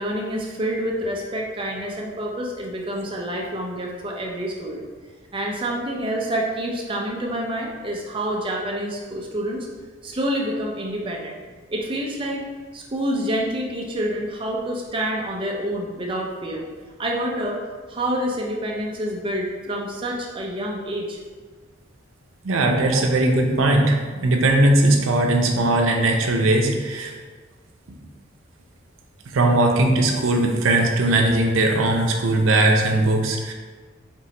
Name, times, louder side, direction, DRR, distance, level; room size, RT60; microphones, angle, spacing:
voice 1, 0.0-4.9 5.3-9.7 10.0-11.4 11.7-12.5 12.7-16.7 17.0-17.6 17.9-21.2 22.9-23.0, right 1 dB, 25° right, -1 dB, 0.5 m, -27 dB
voice 2, 22.4-27.1 29.3-33.5, right 2 dB, 90° right, 1 dB, 0.6 m, -19 dB
4.4 x 3.0 x 2.9 m, 1.4 s
head